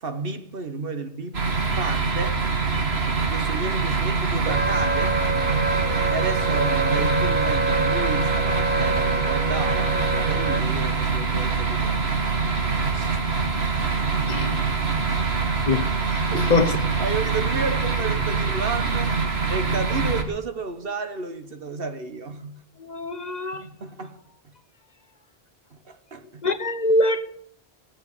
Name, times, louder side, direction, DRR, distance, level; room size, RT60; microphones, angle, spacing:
voice 1, 0.0-2.4 3.3-5.2 6.1-12.2 12.9-13.3 15.1-15.4 16.3-16.6 17.0-19.2 19.5-22.5 23.5-24.2 25.7-26.4, right 4 dB, 65° right, 1.4 m, -32 dB
sound 1, 1.3-20.2, right 4 dB, 80° right, 2.2 m, -24 dB
Wind instrument woodwind instrument, 4.5-10.6, right 2 dB, 15° right, 0.4 m, -27 dB
voice 2, 16.1-16.7 22.8-23.6 26.4-27.3, left 2 dB, 45° left, 1.0 m, -23 dB
17.5 x 8.1 x 8.4 m
omnidirectional pair, 1.1 m